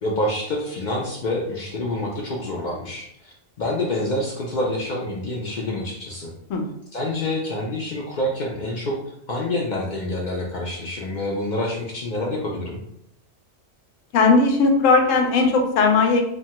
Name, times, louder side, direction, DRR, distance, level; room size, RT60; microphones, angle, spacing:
voice 1, 0.0-6.3 6.9-9.0 9.3-12.8, left 1 dB, 65° left, -2 dB, 0.4 m, -27 dB
voice 2, 14.1-16.2, left 4 dB, 85° left, 3 dB, 1.0 m, -17 dB
3.0 x 2.2 x 2.8 m, 0.73 s
omnidirectional pair, 1.3 m